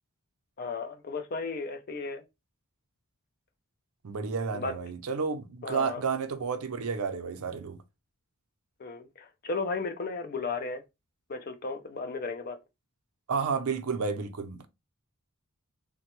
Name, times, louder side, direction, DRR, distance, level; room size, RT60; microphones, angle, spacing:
voice 1, 0.6-2.2 4.5-4.7 5.6-6.0 8.8-10.8 11.3-12.6, left 4 dB, 45° left, 0.5 m, -34 dB
voice 2, 4.0-7.8 13.3-14.7, right 5 dB, 80° right, 0.5 m, -31 dB
3.3 x 2.2 x 2.9 m
head